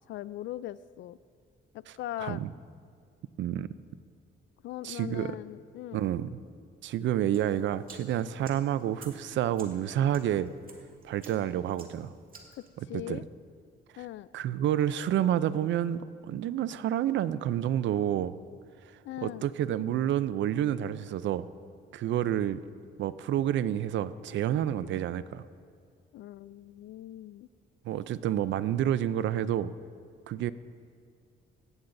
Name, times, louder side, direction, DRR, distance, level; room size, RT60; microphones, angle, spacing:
voice 1, 0.1-1.2 1.7-2.4 4.6-6.0 12.6-13.2 14.0-14.3 19.0-19.5 26.1-27.5, left 14 dB, 70° left, 18 dB, 0.4 m, -40 dB
voice 2, 3.4-3.7 4.8-5.4 5.9-6.3 6.8-10.5 11.0-12.1 12.9-13.2 14.3-18.4 19.2-21.5 21.9-22.6 23.0-25.4 27.8-29.7 30.3-30.5, right 11 dB, 70° right, 15 dB, 0.5 m, -29 dB
sound 1, 7.3-12.7, right 4 dB, 45° right, 2.2 m, -54 dB
17.5 x 14.5 x 2.7 m, 2.3 s
cardioid pair, 90°, 20 cm